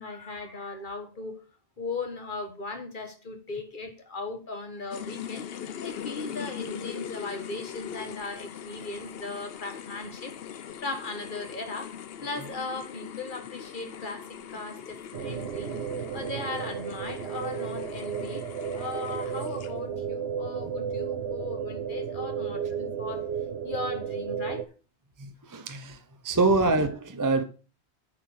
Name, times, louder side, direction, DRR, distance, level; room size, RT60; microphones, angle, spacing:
voice 1, 0.0-1.4 1.8-15.7 16.1-23.3 23.6-24.6 26.3-26.4, left 3 dB, 45° left, 1.6 m, -38 dB
sound 1, 4.9-20.0, left 9 dB, 65° left, 0.9 m, -41 dB
sound 2, 15.1-24.6, right 7 dB, 70° right, 0.9 m, -33 dB
voice 2, 25.2-26.0 26.2-27.4, right 3 dB, 20° right, 0.6 m, -25 dB
9.1 x 4.8 x 6.4 m
omnidirectional pair, 1.1 m